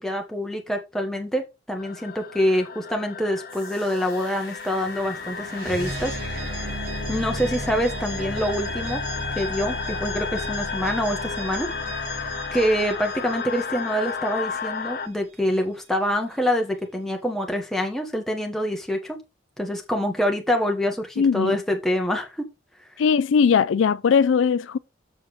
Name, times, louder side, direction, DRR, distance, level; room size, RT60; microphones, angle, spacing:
voice 1, 0.0-6.2 7.1-9.0 9.3-19.2 19.6-22.4, equal, ahead, 1.4 m, -26 dB
sound 1, 1.8-15.1, left 6 dB, 50° left, 0.7 m, -33 dB
sound 2, 3.5-14.3, right 1 dB, 50° right, 2.8 m, -34 dB
voice 2, 21.2-21.6 23.0-24.8, left 6 dB, 80° left, 0.4 m, -19 dB
7.0 x 4.2 x 5.0 m
head